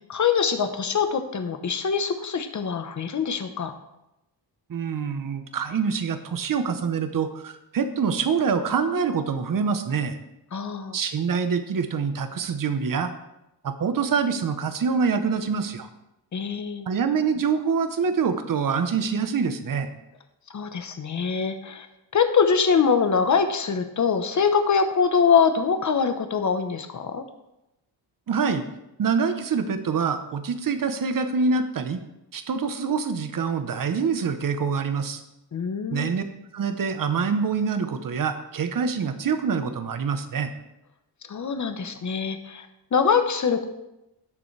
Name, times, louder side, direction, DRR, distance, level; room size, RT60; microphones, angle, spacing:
voice 1, 0.1-3.7 10.5-11.0 16.3-16.9 20.5-21.9 22.1-27.2 35.5-36.1 41.3-42.7 42.9-43.7, left 6 dB, 40° left, 7 dB, 1.0 m, -23 dB
voice 2, 4.7-10.1 10.9-13.1 13.6-15.9 16.9-19.9 28.3-28.6 29.0-32.0 32.3-35.2 35.9-36.2 36.5-40.5, right 5 dB, 50° right, 9 dB, 0.9 m, -25 dB
17.5 x 6.8 x 3.3 m, 0.89 s
wide cardioid pair, 165°, 43 cm